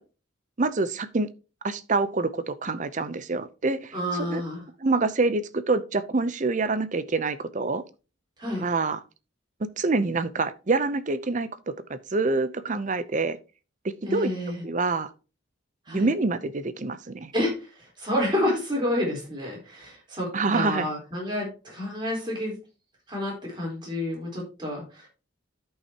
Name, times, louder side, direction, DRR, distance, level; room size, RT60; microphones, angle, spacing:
voice 1, 0.6-1.3 1.6-3.9 4.3-4.4 4.8-7.8 8.6-9.0 9.8-11.5 11.9-13.4 14.1-14.3 14.6-15.1 15.9-17.3 20.3-20.9, right 3 dB, 40° right, 0.6 m, -26 dB
voice 2, 3.9-4.6 8.4-8.7 14.0-14.6 15.9-16.1 17.3-22.6 23.1-25.1, left 1 dB, 25° right, 4.0 m, -29 dB
13.0 x 5.6 x 2.9 m
head